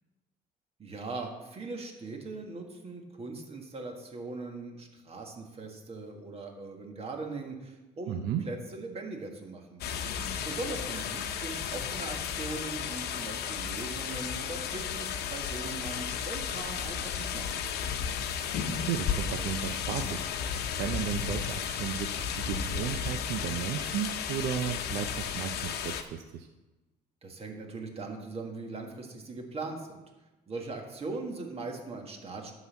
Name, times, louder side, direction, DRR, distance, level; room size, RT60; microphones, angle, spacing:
voice 1, 0.8-9.8 10.4-17.8 27.2-30.0 30.5-32.5, right 3 dB, 35° right, 2 dB, 1.7 m, -40 dB
voice 2, 8.1-8.4 18.7-26.5, right 9 dB, 80° right, 6 dB, 0.6 m, -34 dB
sound 1, 9.8-26.0, left 8 dB, 70° left, 0.8 m, -34 dB
11.0 x 4.0 x 7.1 m, 1.1 s
cardioid pair, 110°, 17 cm